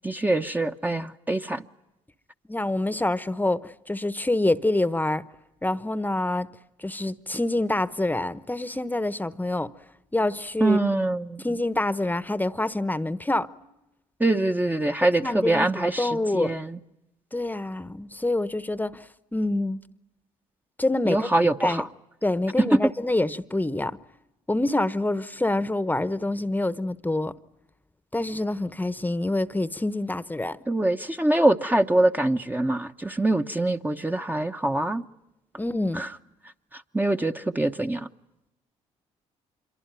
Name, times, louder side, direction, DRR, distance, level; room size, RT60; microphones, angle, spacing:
voice 1, 0.0-1.6 10.6-11.4 14.2-16.8 21.0-21.9 30.7-35.0 36.0-36.1 36.7-38.1, right 2 dB, 10° right, 1.0 m, -24 dB
voice 2, 2.5-5.2 5.6-6.5 6.8-9.7 10.1-10.8 11.4-13.5 15.2-16.5 17.3-19.8 20.8-21.3 21.6-21.8 22.2-24.0 24.5-27.4 28.1-30.6 35.6-36.0, left 2 dB, 10° left, 1.1 m, -26 dB
26.5 x 23.5 x 9.1 m
supercardioid pair, 60°, 15 cm